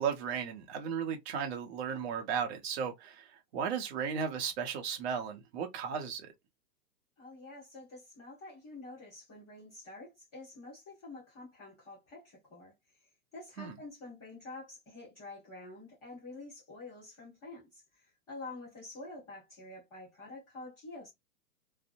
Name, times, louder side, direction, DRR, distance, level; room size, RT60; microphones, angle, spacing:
voice 1, 0.0-6.3 13.6-13.7, right 7 dB, 40° right, 0.7 m, -35 dB
voice 2, 7.2-21.1, left 2 dB, ahead, 0.3 m, -48 dB
2.6 x 2.0 x 2.5 m
hypercardioid pair, 140°, 49 cm